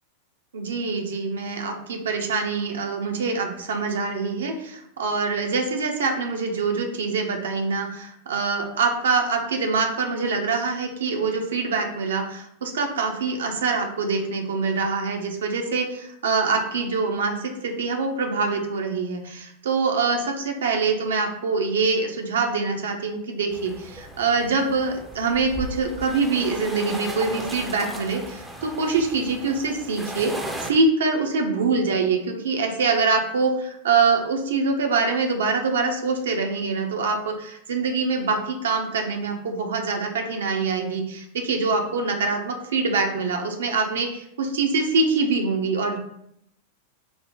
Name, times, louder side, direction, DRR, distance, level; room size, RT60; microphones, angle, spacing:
voice 1, 0.5-30.3 30.6-46.0, right 4 dB, 65° right, 3 dB, 0.6 m, -24 dB
sound 1, 23.5-30.7, right 1 dB, 5° right, 0.5 m, -36 dB
4.0 x 2.1 x 3.6 m, 0.75 s
figure-of-eight pair, 90°, 0 cm